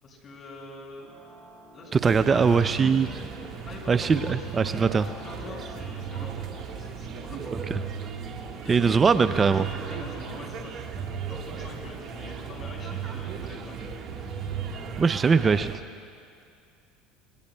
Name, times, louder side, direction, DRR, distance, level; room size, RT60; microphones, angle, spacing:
voice 1, 0.0-1.1 1.7-3.1 3.6-7.5 8.6-10.9 11.3-13.9, left 2 dB, 40° left, -1 dB, 5.0 m, -43 dB
sound 1, 1.0-15.5, equal, 20° left, 4.5 m, -49 dB
voice 2, 1.9-3.1 3.9-5.1 7.5-7.8 8.7-9.6 15.0-15.8, right 5 dB, 25° right, 12 dB, 0.4 m, -21 dB
sound 2, 2.0-15.8, right 7 dB, 45° right, 1.4 m, -36 dB
25.0 x 21.0 x 2.2 m, 2.4 s
supercardioid pair, 95°, 0 cm